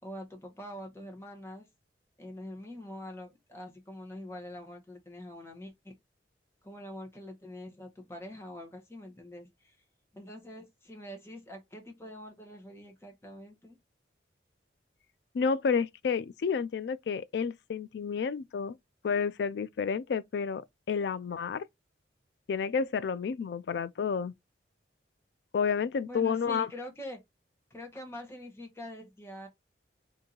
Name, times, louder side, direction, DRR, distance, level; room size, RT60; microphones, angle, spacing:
voice 1, 0.0-1.6 2.2-5.9 6.6-9.8 10.1-13.8 26.1-27.2 27.7-29.5, left 1 dB, 15° left, 1.0 m, -44 dB
voice 2, 15.3-18.8 19.0-21.7 22.5-24.3 25.5-26.7, left 6 dB, 65° left, 0.3 m, -30 dB
2.8 x 2.6 x 3.8 m
head